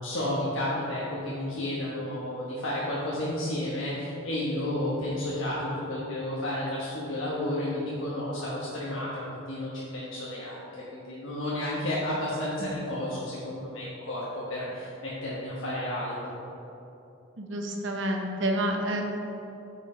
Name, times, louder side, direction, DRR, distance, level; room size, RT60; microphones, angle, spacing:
voice 1, 0.0-10.6 10.9-16.4, left 1 dB, 75° left, -7 dB, 1.2 m, -32 dB
voice 2, 17.4-19.0, right 1 dB, 65° right, 1 dB, 0.9 m, -29 dB
8.8 x 5.0 x 4.3 m, 2.9 s
head